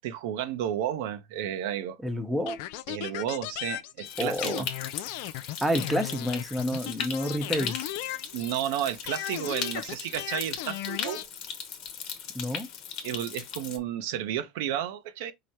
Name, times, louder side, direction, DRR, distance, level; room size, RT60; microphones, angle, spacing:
voice 1, 0.0-2.0 2.9-4.6 8.3-11.2 13.0-15.3, right 11 dB, 75° right, 0.7 m, -32 dB
voice 2, 2.0-2.6 4.2-4.7 5.6-7.8 12.3-12.7, equal, 5° right, 0.9 m, -29 dB
sound 1, 2.5-8.7 9.1-11.3, left 14 dB, 70° left, 0.4 m, -36 dB
Stream, 4.1-13.8, left 7 dB, 55° left, 1.0 m, -38 dB
4.8 x 2.1 x 4.3 m
supercardioid pair, 100°, 0 cm